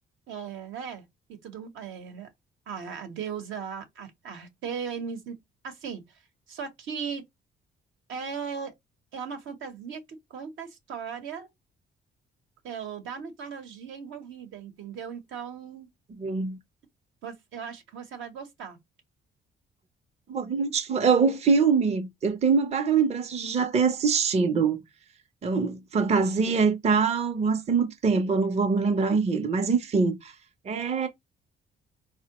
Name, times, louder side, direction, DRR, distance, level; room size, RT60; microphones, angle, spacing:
voice 1, 0.3-2.3 2.7-5.4 5.6-6.2 6.5-7.2 8.1-8.7 9.1-11.5 12.6-15.9 17.2-18.8, right 6 dB, 75° right, 0.8 m, -37 dB
voice 2, 16.2-16.6 20.3-24.8 25.4-30.3 30.7-31.1, right 5 dB, 35° right, 0.5 m, -24 dB
3.5 x 2.1 x 2.8 m
cardioid pair, 90°, 20 cm